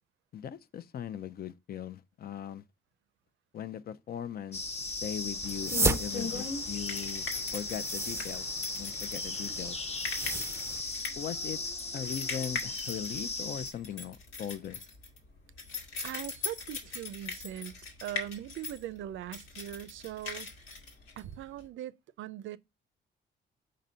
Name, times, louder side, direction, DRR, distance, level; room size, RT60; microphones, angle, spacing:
voice 1, 0.3-2.6 3.5-4.6 5.0-8.5 8.8-9.8 11.2-11.6 11.9-14.8, left 9 dB, 50° left, 0.6 m, -39 dB
sound 1, 4.5-13.7, left 3 dB, 35° left, 0.9 m, -37 dB
sound 2, 4.9-21.7, left 4 dB, 90° left, 1.8 m, -40 dB
sound 3, 5.4-10.8, right 3 dB, 15° right, 0.5 m, -35 dB
voice 2, 16.0-17.7 18.0-20.5 21.2-22.6, right 12 dB, 75° right, 0.5 m, -40 dB
5.2 x 3.9 x 5.5 m
cardioid pair, 90°, 20 cm